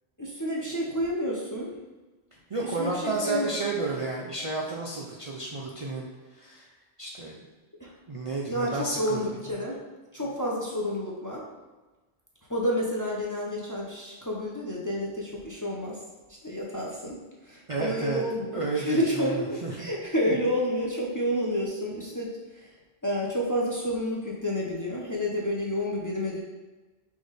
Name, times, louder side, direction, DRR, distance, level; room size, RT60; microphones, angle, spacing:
voice 1, 0.2-1.7 2.6-3.6 7.8-7.9 8.5-9.8 10.1-11.5 12.5-16.0 16.4-22.7 23.0-26.4, equal, 25° left, -3 dB, 0.5 m, -30 dB
voice 2, 2.5-6.7 7.0-7.4 8.1-9.3 17.7-18.2 18.5-19.9, right 3 dB, 45° right, -3 dB, 0.4 m, -31 dB
5.0 x 2.6 x 3.9 m, 1.2 s
omnidirectional pair, 1.1 m